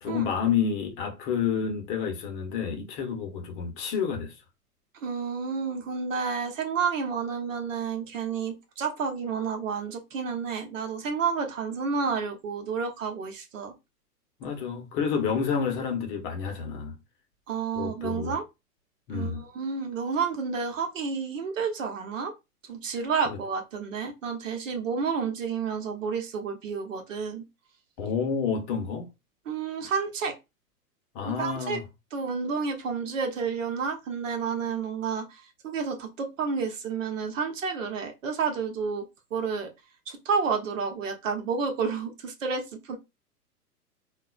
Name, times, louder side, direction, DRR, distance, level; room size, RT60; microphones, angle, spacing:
voice 1, 0.0-4.4 14.4-17.0 17.8-18.3 19.1-19.4 23.3-23.4 28.0-29.1 31.1-31.8, left 6 dB, 30° left, 0.9 m, -29 dB
voice 2, 5.0-13.7 17.5-18.4 19.1-22.3 22.7-27.4 29.5-30.4 31.2-31.8 32.1-39.0 39.3-39.7 40.1-43.0, right 5 dB, 55° right, 1.0 m, -30 dB
3.8 x 2.4 x 2.3 m
figure-of-eight pair, 105°, 46 cm